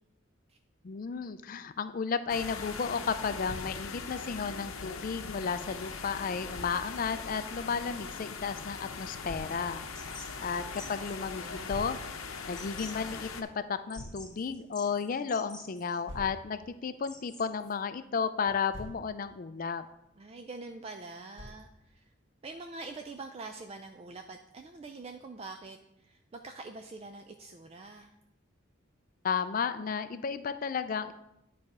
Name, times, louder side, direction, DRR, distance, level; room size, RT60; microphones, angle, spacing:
voice 1, 0.8-9.8 10.4-12.0 12.5-19.9 29.2-31.1, left 6 dB, 40° left, 12 dB, 0.4 m, -33 dB
sound 1, 2.3-13.4, left 5 dB, 90° left, 0.7 m, -41 dB
Thump thud, 3.4-3.8 6.5-6.8 9.3-9.6 11.7-12.0 13.9-14.2 16.1-16.4 18.4-19.0 21.4-21.7, equal, 70° right, 2.7 m, -43 dB
sound 2, 9.9-17.7, left 2 dB, 5° left, 0.8 m, -51 dB
voice 2, 11.4-11.7 20.2-22.0 22.4-28.1, right 3 dB, 30° right, 5 dB, 0.3 m, -45 dB
10.0 x 4.2 x 4.7 m, 0.85 s
head